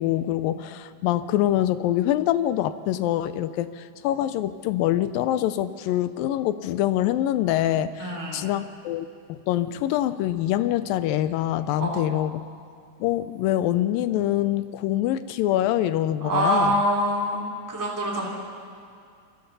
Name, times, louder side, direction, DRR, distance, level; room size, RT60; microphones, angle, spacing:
voice 1, 0.0-12.4 13.0-16.8, left 13 dB, 90° left, 13 dB, 2.4 m, -25 dB
voice 2, 8.0-8.5 11.7-12.1 16.2-17.4 17.7-18.3, right 1 dB, 5° right, -3 dB, 2.7 m, -25 dB
28.5 x 24.0 x 4.1 m, 2.3 s
omnidirectional pair, 3.9 m